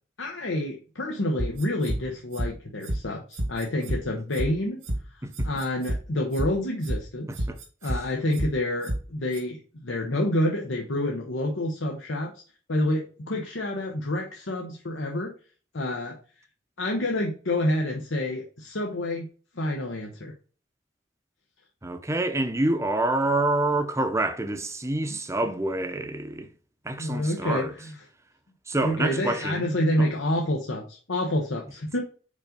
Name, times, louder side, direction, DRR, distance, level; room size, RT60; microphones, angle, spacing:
voice 1, 0.2-4.8 5.4-7.4 7.8-12.3 12.7-15.3 15.7-16.2 16.8-19.3 19.5-20.3 27.0-28.0 28.7-32.0, left 1 dB, 80° left, 1.0 m, -28 dB
sound 1, 1.4-2.0 2.3-2.5 2.8-3.0 3.3-4.0 4.3-4.5 4.8-5.0 5.3-6.0 6.3-6.5 6.8-7.0 7.3-8.0 8.3-8.5 8.8-9.0 9.3-9.4, right 1 dB, 90° right, 2.1 m, -28 dB
voice 2, 21.8-26.5 26.8-27.7 28.7-30.1, right 2 dB, 15° right, 0.7 m, -27 dB
5.3 x 3.9 x 5.1 m
head